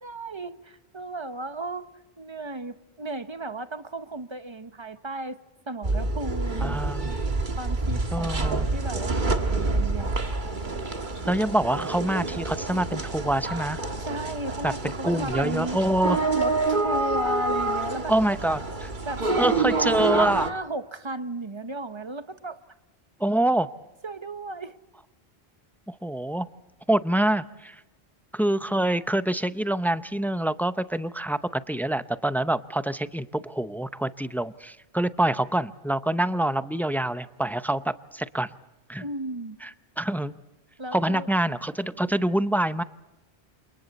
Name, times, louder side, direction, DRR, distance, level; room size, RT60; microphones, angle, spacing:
voice 1, 0.0-1.9 2.2-5.4 5.7-6.8 7.5-10.2 14.0-15.8 16.3-18.1 19.0-22.6 24.0-24.8 39.0-39.6 40.8-41.3, right 2 dB, 30° right, 0.9 m, -34 dB
sound 1, 5.8-20.5, right 3 dB, 50° right, 1.7 m, -27 dB
voice 2, 6.6-7.3 8.1-8.7 11.3-13.8 14.6-16.2 18.1-18.9 19.4-20.5 23.2-23.7 25.9-26.5 26.9-27.8 28.3-38.5 38.9-39.0 39.6-39.7 40.0-40.4 40.9-42.8, right 1 dB, 5° left, 0.4 m, -26 dB
29.0 x 28.0 x 4.2 m
omnidirectional pair, 1.1 m